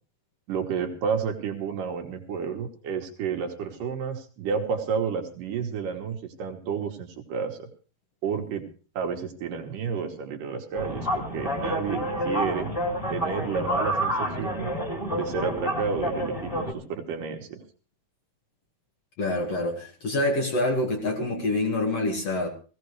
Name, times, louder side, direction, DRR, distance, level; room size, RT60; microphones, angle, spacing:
voice 1, 0.5-7.7 8.2-8.6 9.0-12.7 13.1-14.7 15.1-17.6, right 6 dB, 65° right, 3 dB, 2.9 m, -31 dB
sound 1, 10.7-16.7, equal, 10° left, 2.2 m, -29 dB
voice 2, 19.2-22.5, left 2 dB, 50° left, 2 dB, 2.6 m, -26 dB
18.5 x 16.0 x 3.2 m, 0.36 s
omnidirectional pair, 4.3 m